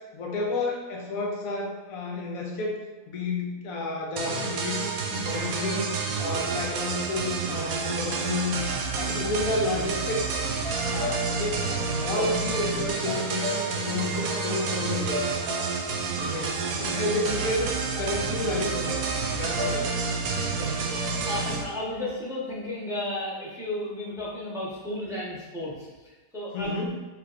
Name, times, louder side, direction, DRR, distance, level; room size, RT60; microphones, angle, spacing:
voice 1, 0.1-2.8 3.1-5.9 6.2-8.6 9.0-10.4 10.9-11.7 12.0-15.2 16.2-16.5 16.8-19.0 19.3-20.1 26.5-27.0, left 2 dB, 80° left, -1 dB, 1.1 m, -30 dB
sound 1, 4.2-21.6, right 4 dB, 85° right, 1.1 m, -29 dB
sound 2, 10.1-18.1 18.9-19.8, left 1 dB, 55° right, 0.7 m, -37 dB
voice 2, 20.5-21.0 21.3-26.7, left 1 dB, 5° right, -6 dB, 1.0 m, -34 dB
5.7 x 3.3 x 2.4 m, 1.2 s
omnidirectional pair, 1.5 m